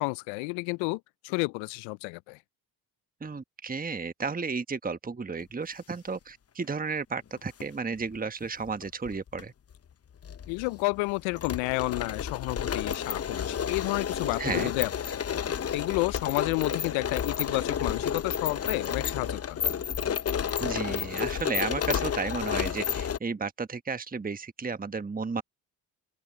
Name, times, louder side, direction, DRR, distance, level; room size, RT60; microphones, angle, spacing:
voice 1, 0.0-2.4 10.5-15.2 15.7-19.6, left 28 dB, 80° left, 0.6 m, -31 dB
voice 2, 3.2-9.5 14.4-14.7 20.6-25.4, right 4 dB, 20° right, 1.2 m, -33 dB
sound 1, 7.4-7.6 8.7-9.4 9.7-9.8 10.2-23.2, left 8 dB, 30° left, 0.8 m, -31 dB
open air
hypercardioid pair, 50°, 46 cm